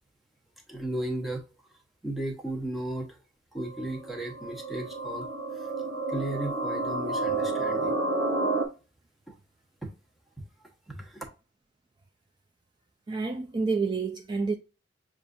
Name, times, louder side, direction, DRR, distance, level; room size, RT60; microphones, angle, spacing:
voice 1, 0.7-1.4 2.0-3.2 3.5-5.2 5.5-5.7 6.1-7.9 9.3-9.4 9.8-9.9 10.4-10.5 10.9-11.2, right 1 dB, ahead, 1.0 m, -35 dB
sound 1, 3.6-8.6, right 2 dB, 80° right, 0.9 m, -30 dB
voice 2, 13.1-14.6, right 4 dB, 25° right, 0.3 m, -28 dB
6.9 x 2.5 x 2.6 m
head